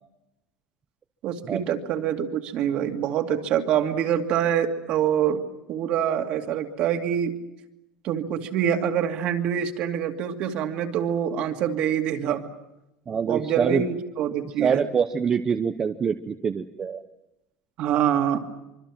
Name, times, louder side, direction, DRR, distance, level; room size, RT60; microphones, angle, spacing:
voice 1, 1.2-5.4 5.7-7.4 8.0-12.4 13.3-14.8 17.8-18.4, right 9 dB, 45° right, 5 dB, 2.4 m, -25 dB
voice 2, 13.1-13.8 14.6-17.0, right 6 dB, 20° right, 7 dB, 0.8 m, -25 dB
25.5 x 24.5 x 7.5 m, 0.93 s
cardioid pair, 160°, 3 cm